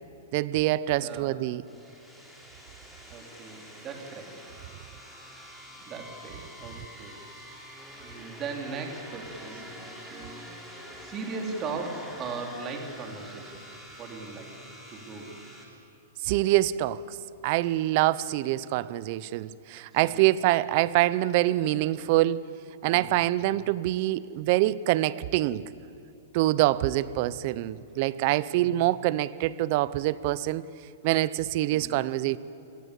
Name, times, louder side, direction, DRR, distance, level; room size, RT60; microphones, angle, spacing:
voice 1, 0.3-1.6 16.2-17.2 17.4-22.5 22.8-25.7 26.3-30.7 31.0-32.4, right 16 dB, 40° right, 0.6 m, -25 dB
voice 2, 0.9-1.4 3.1-4.3 4.9-7.2 8.0-13.6 14.0-14.5 14.9-15.4 19.9-20.2 22.8-23.1 26.9-27.3 28.5-28.8 31.7-32.0, right 4 dB, 20° right, 3.1 m, -39 dB
sound 1, 1.6-15.7, equal, ahead, 3.1 m, -46 dB
26.5 x 18.5 x 8.3 m
hypercardioid pair, 160°, 0 cm